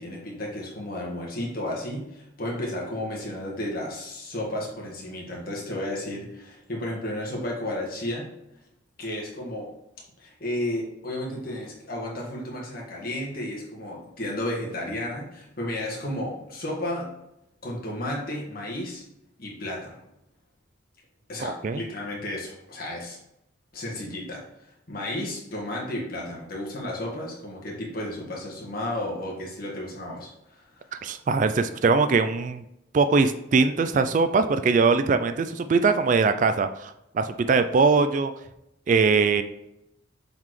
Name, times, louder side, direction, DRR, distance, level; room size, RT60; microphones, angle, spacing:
voice 1, 0.0-8.3 9.0-9.7 10.2-17.1 17.6-19.0 19.4-20.0 21.3-23.2 23.7-30.9, left 1 dB, 50° left, -2 dB, 1.7 m, -33 dB
voice 2, 21.4-21.8 31.0-32.6 32.9-38.3 38.9-39.4, right 4 dB, 40° right, 10 dB, 0.3 m, -21 dB
7.2 x 4.1 x 3.1 m, 0.84 s
head